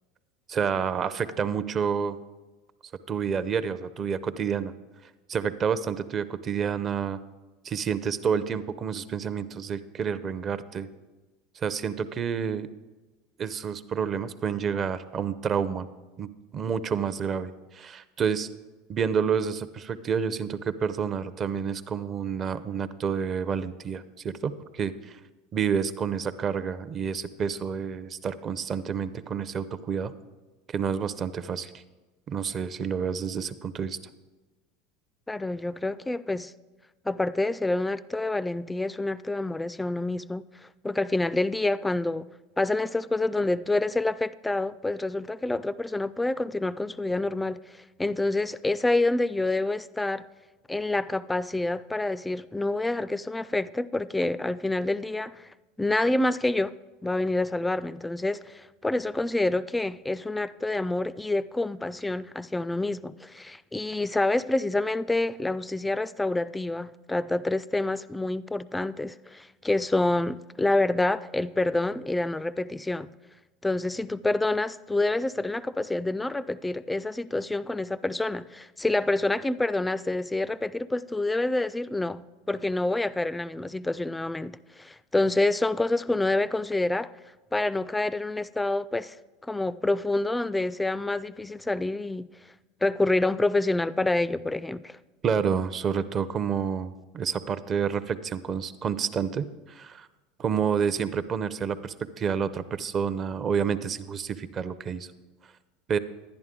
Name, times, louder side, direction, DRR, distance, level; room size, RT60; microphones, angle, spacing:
voice 1, 0.5-2.2 3.1-4.7 5.3-7.2 7.6-10.9 11.6-12.7 13.4-15.9 16.2-18.5 18.9-25.2 25.5-30.1 30.7-31.8 32.3-34.0 95.2-100.1 100.4-105.1 105.9-106.0, right 7 dB, 35° right, 0.6 m, -29 dB
voice 2, 35.3-36.5 37.1-40.4 40.8-42.3 42.6-50.2 50.7-55.5 55.8-56.7 57.0-73.1 73.6-87.1 87.5-89.2 89.4-92.3 92.8-95.0, left 2 dB, 10° left, 0.3 m, -27 dB
10.5 x 10.5 x 3.8 m
hypercardioid pair, 90°, 0 cm